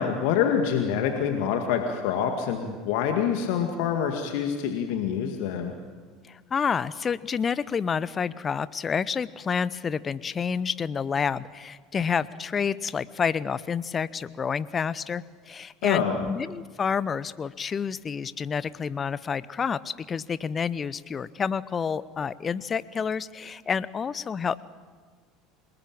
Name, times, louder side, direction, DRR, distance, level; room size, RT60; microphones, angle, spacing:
voice 1, 0.0-5.7 15.8-16.2, left 8 dB, 60° left, 4 dB, 2.1 m, -26 dB
voice 2, 6.3-24.6, left 6 dB, 30° left, 18 dB, 0.8 m, -29 dB
27.5 x 20.0 x 8.9 m, 1.5 s
figure-of-eight pair, 70°, 0 cm